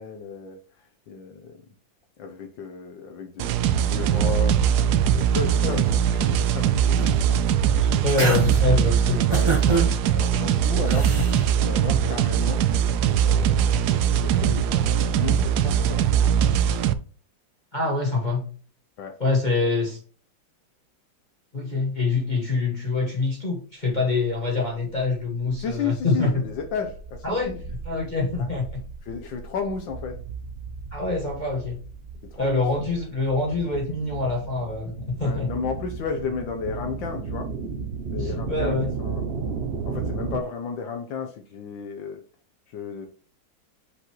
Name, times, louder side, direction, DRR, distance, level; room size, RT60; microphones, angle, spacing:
voice 1, 0.0-1.6 2.2-4.7 5.1-7.4 8.3-8.6 9.1-11.1 11.6-12.7 13.2-16.1 19.0-19.2 25.6-27.6 28.4-28.5 29.0-30.2 32.3-32.6 35.2-37.5 38.1-39.3 39.8-42.2 42.7-43.1, left 5 dB, 75° left, 1.6 m, -33 dB
sound 1, 3.4-16.9, right 9 dB, 70° right, 1.0 m, -21 dB
sound 2, 6.9-7.4 7.8-8.6 9.3-9.9 10.9-11.4, right 4 dB, 20° right, 1.2 m, -27 dB
voice 2, 8.0-9.2 13.6-13.8 17.7-18.5 19.2-20.0 21.5-26.4 27.2-27.5 27.8-28.7 30.9-31.8 32.4-35.5 38.2-38.9, left 3 dB, 25° left, 1.4 m, -25 dB
sound 3, 25.2-40.4, right 5 dB, 90° right, 0.5 m, -35 dB
6.4 x 5.2 x 3.0 m
omnidirectional pair, 2.1 m